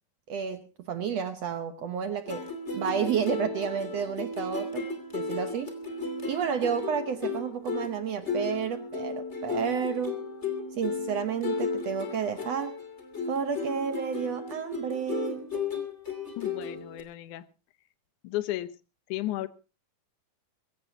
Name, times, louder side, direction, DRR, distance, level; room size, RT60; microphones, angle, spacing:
voice 1, 0.3-2.5 2.7-4.9 5.1-5.7 6.3-10.2 10.7-12.7 13.3-15.5, right 7 dB, 65° right, 1.8 m, -31 dB
sound 1, 2.3-17.0, left 3 dB, 20° left, 2.7 m, -34 dB
voice 2, 16.4-17.4 18.2-18.7 19.1-19.5, left 15 dB, 75° left, 2.3 m, -33 dB
24.0 x 16.0 x 2.8 m
omnidirectional pair, 3.7 m